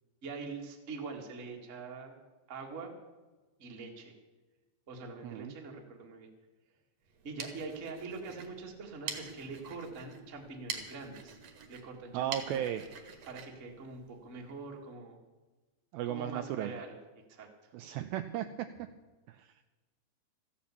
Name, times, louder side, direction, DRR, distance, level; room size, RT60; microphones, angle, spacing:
voice 1, 0.2-2.2 2.5-2.9 3.6-4.2 4.9-6.3 7.2-11.4 11.7-12.8 13.3-15.2 16.1-17.0 17.3-17.5, right 4 dB, 40° right, 1 dB, 1.1 m, -44 dB
voice 2, 5.2-5.5 12.1-12.9 15.9-16.7 17.7-18.7 19.3-19.5, right 11 dB, 90° right, 9 dB, 2.1 m, -35 dB
sound 1, 7.1-14.6, right 6 dB, 55° right, 1.9 m, -46 dB
14.5 x 8.5 x 8.4 m, 1.2 s
omnidirectional pair, 4.8 m